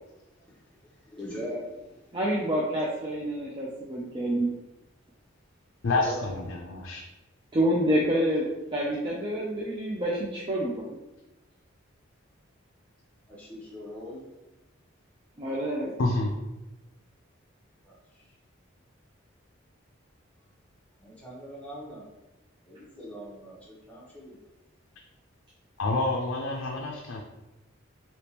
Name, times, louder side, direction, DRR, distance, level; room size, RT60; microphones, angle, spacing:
voice 1, 0.4-2.2 5.9-6.2 13.3-14.3 17.8-18.3 21.0-22.1 22.6-24.4, equal, 5° left, -6 dB, 0.8 m, -41 dB
voice 2, 2.1-4.5 7.5-8.5 8.7-11.0 15.4-16.0, equal, 25° right, -4 dB, 0.4 m, -27 dB
voice 3, 5.8-7.0 16.0-16.3 25.8-27.2, left 2 dB, 65° left, 0 dB, 0.4 m, -28 dB
3.3 x 2.9 x 2.9 m, 1.0 s
head